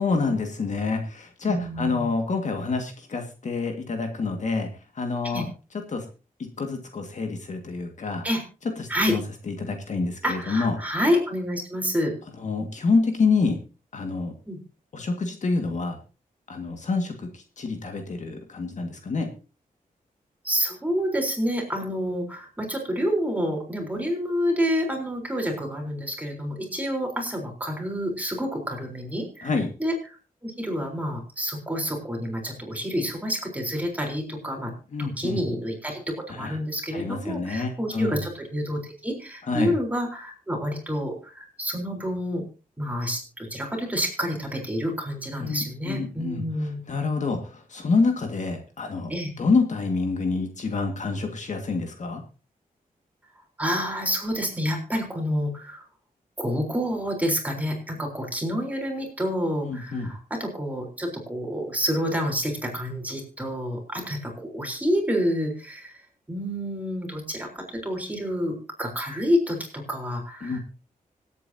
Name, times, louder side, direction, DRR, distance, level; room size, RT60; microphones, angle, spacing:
voice 1, 0.0-5.5 5.9-6.1 6.4-8.2 8.8-9.2 9.5-10.8 12.4-13.6 13.9-14.3 14.9-16.0 16.5-19.3 29.4-29.7 34.9-35.4 36.3-36.6 36.9-38.2 39.5-39.7 45.4-46.4 46.9-49.1 49.4-52.2 59.7-60.1 70.4-70.6, left 4 dB, 55° left, 4 dB, 2.0 m, -27 dB
voice 2, 1.4-2.1 5.2-5.4 8.2-8.4 8.9-9.1 10.2-12.1 14.5-14.6 20.4-29.5 29.8-29.9 30.4-34.7 35.0-36.0 36.3-42.4 42.8-46.8 49.1-49.3 53.6-55.8 56.4-66.0 66.3-70.6, equal, 10° right, 0 dB, 4.0 m, -28 dB
25.5 x 8.5 x 2.8 m, 0.34 s
wide cardioid pair, 150°, 15 cm